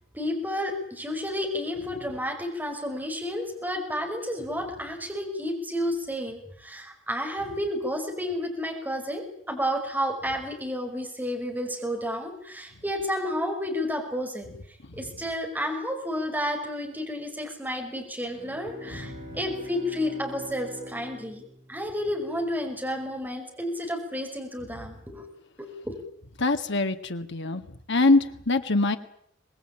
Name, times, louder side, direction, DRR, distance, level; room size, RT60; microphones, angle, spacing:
voice 1, 0.1-14.5 14.9-21.4 21.7-25.3 25.6-26.0, equal, 10° right, 2 dB, 5.5 m, -31 dB
Bowed string instrument, 18.2-22.7, equal, 30° right, 7.6 m, -44 dB
voice 2, 18.9-19.4 26.4-27.6 27.9-29.0, left 2 dB, 60° left, 7 dB, 1.9 m, -24 dB
25.0 x 20.0 x 9.0 m, 0.68 s
head